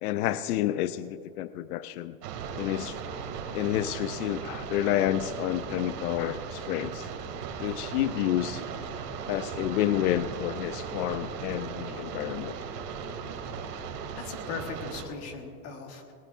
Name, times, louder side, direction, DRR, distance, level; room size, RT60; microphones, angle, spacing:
voice 1, 0.0-2.2 2.6-3.0 3.5-7.1 7.6-8.6 9.3-12.5, left 13 dB, 70° left, 13 dB, 0.6 m, -29 dB
sound 1, 2.2-15.1, right 6 dB, 75° right, 2.3 m, -37 dB
voice 2, 14.2-16.1, left 5 dB, 30° left, 4 dB, 1.3 m, -38 dB
20.5 x 18.5 x 2.5 m, 2.6 s
supercardioid pair, 170°, 47 cm